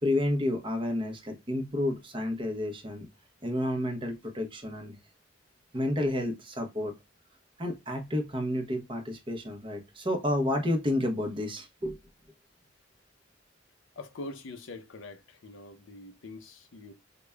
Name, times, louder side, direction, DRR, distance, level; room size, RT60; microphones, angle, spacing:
voice 1, 0.0-3.1 3.4-5.0 5.7-6.9 7.6-12.0, left 1 dB, 25° right, 0.7 m, -30 dB
voice 2, 14.0-16.9, left 2 dB, 70° left, 0.6 m, -44 dB
4.9 x 2.2 x 2.2 m
head